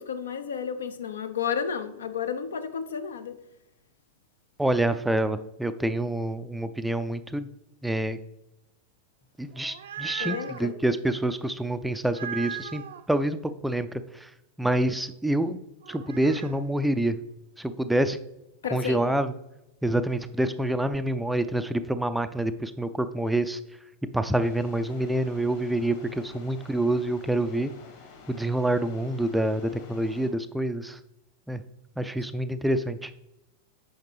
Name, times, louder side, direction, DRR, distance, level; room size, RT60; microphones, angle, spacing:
voice 1, 0.0-3.4 10.2-10.7 18.6-19.2, left 7 dB, 65° left, 0.6 m, -32 dB
voice 2, 4.6-7.5 7.8-8.2 9.4-14.3 14.6-15.6 15.9-17.2 17.6-18.2 18.7-19.3 19.8-23.6 24.1-27.7 28.3-31.0 31.5-31.6 32.0-33.1, right 1 dB, 5° right, 0.4 m, -27 dB
sound 1, 9.5-10.6 12.1-13.0 15.8-16.6, right 9 dB, 60° right, 0.5 m, -37 dB
sound 2, 24.4-30.3, left 4 dB, 50° left, 2.1 m, -50 dB
8.8 x 5.6 x 3.4 m
figure-of-eight pair, 90°, 0 cm